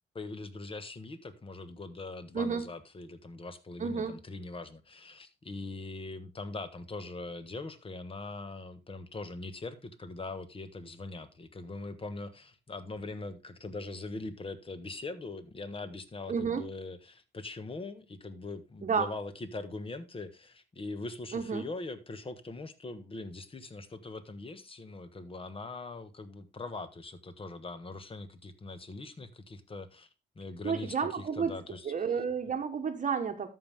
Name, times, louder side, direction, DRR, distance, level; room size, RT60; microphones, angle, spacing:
voice 1, 0.1-30.1 30.3-31.9, left 3 dB, 25° left, 1.4 m, -42 dB
voice 2, 3.8-4.1 16.3-16.6 18.8-19.1 21.3-21.6 30.6-31.5 31.8-33.5, right 6 dB, 40° right, 1.2 m, -31 dB
13.0 x 5.6 x 3.5 m
cardioid pair, 90°, 20 cm